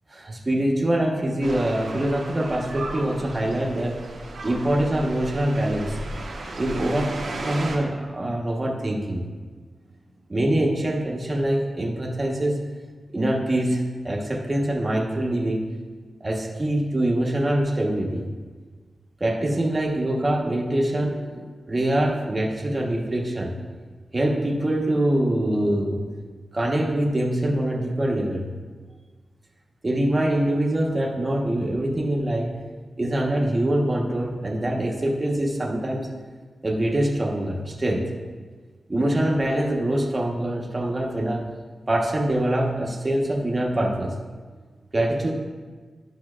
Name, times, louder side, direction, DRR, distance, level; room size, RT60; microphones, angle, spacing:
voice 1, 0.1-4.1 4.4-6.0 6.6-9.3 10.3-12.6 13.1-15.7 16.2-18.3 19.2-23.5 24.1-26.0 26.5-28.5 29.8-32.6 33.0-36.1 36.6-38.1 38.9-41.5 41.9-44.2 44.9-45.3, right 1 dB, 25° right, -2 dB, 1.1 m, -24 dB
sound 1, 1.4-7.8, right 2 dB, 80° right, 1.0 m, -35 dB
10.5 x 6.0 x 2.4 m, 1.5 s
wide cardioid pair, 110°, 0 cm